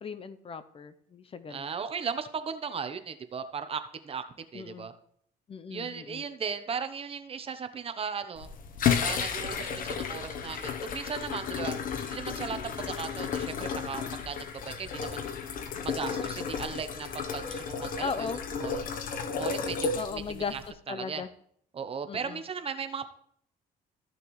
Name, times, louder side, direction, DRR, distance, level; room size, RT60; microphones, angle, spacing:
voice 1, 0.0-1.7 4.5-4.9 5.5-6.2 18.0-18.4 20.0-20.5 20.9-21.3 22.1-22.4, left 5 dB, 35° left, 12 dB, 0.7 m, -37 dB
voice 2, 1.5-4.9 5.7-8.5 9.0-11.8 12.0-15.3 15.8-18.9 19.3-20.6 20.9-21.2 21.7-23.0, right 6 dB, 35° right, 9 dB, 0.9 m, -37 dB
sound 1, 8.4-20.7, left 6 dB, 55° left, 1.0 m, -33 dB
14.0 x 6.6 x 3.2 m, 0.65 s
cardioid pair, 110°, 17 cm